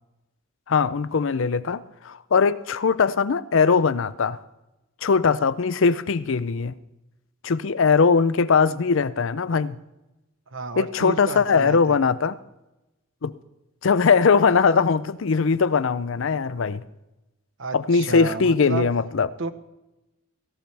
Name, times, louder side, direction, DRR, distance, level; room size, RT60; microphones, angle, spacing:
voice 1, 0.7-4.4 5.0-6.7 7.4-9.8 10.8-12.4 13.2-13.3 13.8-16.8 17.7-19.3, left 5 dB, 65° left, 0.5 m, -20 dB
voice 2, 10.5-11.9 17.6-18.9 19.4-19.5, right 4 dB, 65° right, 1.1 m, -31 dB
17.5 x 16.0 x 3.4 m
head